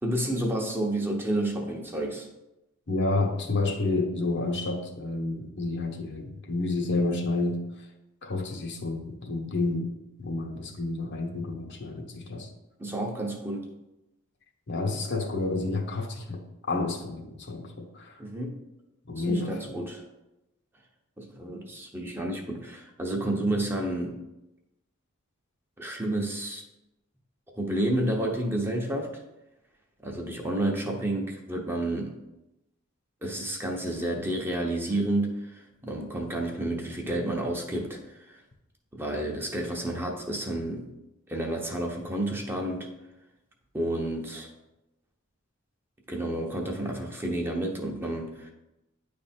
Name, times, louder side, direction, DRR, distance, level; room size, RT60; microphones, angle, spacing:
voice 1, 0.0-2.3 12.8-13.7 18.2-18.5 19.2-20.0 21.2-24.2 25.8-26.6 27.5-29.1 30.0-32.2 33.2-38.4 38.9-40.9 41.3-42.9 43.7-44.5 46.1-48.5, right 1 dB, 10° right, 0 dB, 0.9 m, -30 dB
voice 2, 2.9-7.6 8.2-9.9 10.2-12.5 14.7-18.2 19.1-19.8, left 2 dB, 55° left, 2 dB, 1.0 m, -30 dB
9.6 x 3.4 x 4.3 m, 0.93 s
head